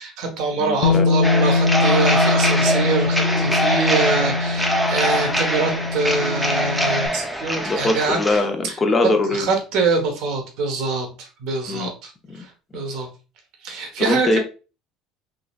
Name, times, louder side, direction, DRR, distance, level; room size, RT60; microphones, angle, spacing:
voice 1, 0.0-8.8 9.3-13.1 13.6-14.4, right 4 dB, 70° right, 1.1 m, -25 dB
voice 2, 0.6-1.1 7.6-9.5 11.7-11.9 12.3-12.4 14.0-14.4, left 2 dB, 25° left, 0.8 m, -22 dB
Bass guitar, 0.8-7.1, left 4 dB, 80° left, 0.5 m, -22 dB
sound 1, 1.2-8.4, equal, 5° right, 0.7 m, -23 dB
3.8 x 2.9 x 2.5 m
supercardioid pair, 95°, 0 cm